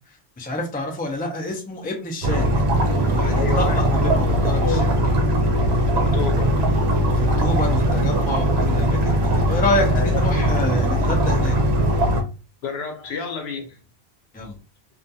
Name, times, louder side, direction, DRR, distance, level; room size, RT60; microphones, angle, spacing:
voice 1, 0.4-5.0 7.2-11.6 14.3-14.6, left 2 dB, 15° left, 0.3 m, -28 dB
sound 1, 2.2-12.2, equal, 80° right, 0.9 m, -20 dB
sound 2, 2.7-4.9 6.3-11.8, right 1 dB, 40° right, 0.9 m, -40 dB
voice 2, 3.3-4.1 4.6-4.8 5.9-6.7 9.9-10.2 12.6-13.8, left 5 dB, 75° left, 0.9 m, -30 dB
2.4 x 2.2 x 2.7 m
omnidirectional pair, 1.1 m